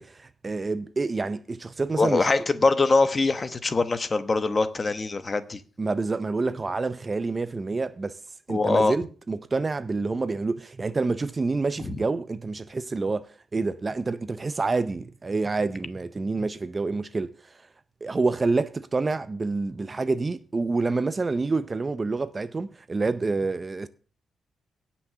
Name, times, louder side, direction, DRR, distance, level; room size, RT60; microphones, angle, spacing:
voice 1, 0.0-2.3 5.8-8.2 8.5-17.6 18.0-23.9, right 3 dB, 25° right, 0.6 m, -28 dB
voice 2, 2.0-5.6 8.5-8.9, left 3 dB, 25° left, 1.1 m, -23 dB
17.5 x 6.2 x 6.8 m
wide cardioid pair, 155°, 0 cm